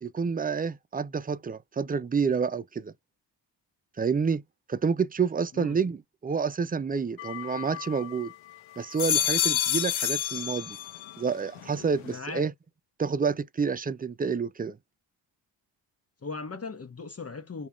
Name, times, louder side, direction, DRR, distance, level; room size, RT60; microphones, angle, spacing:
voice 1, 0.0-2.9 4.0-4.4 4.7-8.3 8.8-10.8 11.2-12.5 13.0-14.8, right 5 dB, 20° right, 0.4 m, -28 dB
sound 1, 7.2-8.3 8.8-11.2 11.6-12.2, left 11 dB, 75° left, 0.9 m, -29 dB
voice 2, 12.0-12.5 16.2-17.7, left 4 dB, 30° left, 0.9 m, -38 dB
3.3 x 2.4 x 3.6 m
cardioid pair, 65°, 48 cm